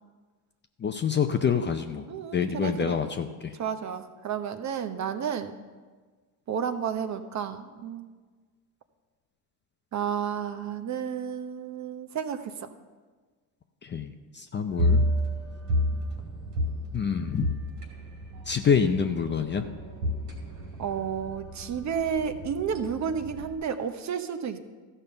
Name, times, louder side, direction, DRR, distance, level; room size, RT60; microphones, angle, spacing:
voice 1, 0.8-2.1 2.3-3.5 13.8-15.0 16.9-17.5 18.5-19.6, left 7 dB, 25° left, 7 dB, 0.6 m, -27 dB
voice 2, 2.1-3.0 3.6-5.5 6.5-8.1 9.9-12.7 20.8-24.6, right 7 dB, 35° right, 9 dB, 0.9 m, -31 dB
sound 1, 14.7-23.5, left 1 dB, 90° right, 2.6 m, -31 dB
13.5 x 5.5 x 6.6 m, 1.4 s
supercardioid pair, 90°, 49 cm